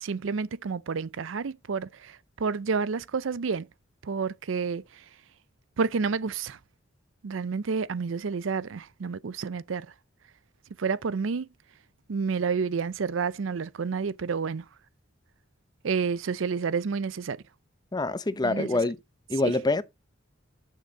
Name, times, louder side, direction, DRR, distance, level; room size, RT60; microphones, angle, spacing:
voice 1, 0.0-3.6 4.0-5.0 5.8-6.6 7.2-9.9 10.8-11.5 12.1-14.6 15.8-17.4 18.4-18.8 19.4-19.5, right 5 dB, 75° right, 0.5 m, -30 dB
voice 2, 17.9-19.0 19.3-19.8, left 2 dB, 20° left, 0.7 m, -25 dB
9.6 x 6.6 x 3.9 m
head